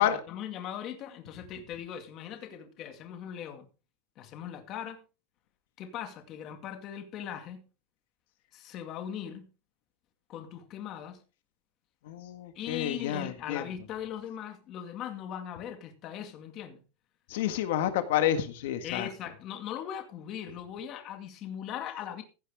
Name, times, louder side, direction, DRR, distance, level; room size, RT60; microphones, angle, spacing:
voice 1, 0.0-3.7 4.2-5.0 5.8-7.7 8.5-9.5 10.3-11.2 12.6-16.8 18.8-22.2, left 9 dB, 35° left, 2.2 m, -39 dB
voice 2, 12.0-13.6 17.3-19.1, left 11 dB, 80° left, 1.7 m, -29 dB
16.0 x 10.5 x 3.6 m
supercardioid pair, 170°, 0 cm